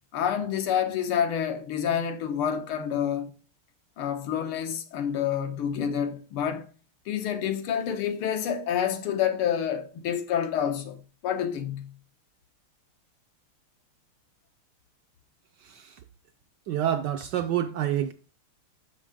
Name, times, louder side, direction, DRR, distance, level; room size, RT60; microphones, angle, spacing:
voice 1, 0.1-3.3 4.0-6.6 7.1-11.9, left 9 dB, 90° left, 2.0 m, -28 dB
voice 2, 16.7-18.1, right 11 dB, 75° right, 1.0 m, -27 dB
6.4 x 6.3 x 4.9 m
omnidirectional pair, 2.3 m